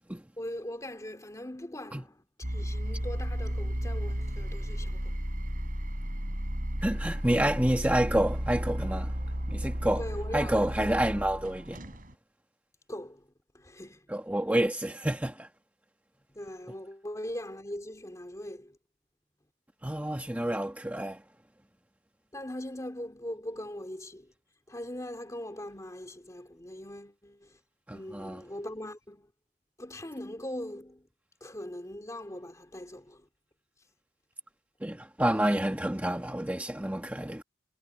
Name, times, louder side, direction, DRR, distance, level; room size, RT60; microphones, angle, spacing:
voice 1, 0.4-5.2 9.9-10.8 12.9-13.3 13.5-14.1 16.3-18.8 22.3-24.3 24.7-27.6 27.9-29.3 29.8-31.1 31.4-33.3, left 1 dB, 20° left, 2.8 m, -41 dB
sound 1, 2.4-12.1, equal, 50° right, 6.3 m, -33 dB
voice 2, 6.8-9.2 9.5-10.0 10.3-11.9 14.1-15.5 19.8-21.2 27.9-28.4 34.8-37.4, right 1 dB, 10° right, 1.2 m, -28 dB
head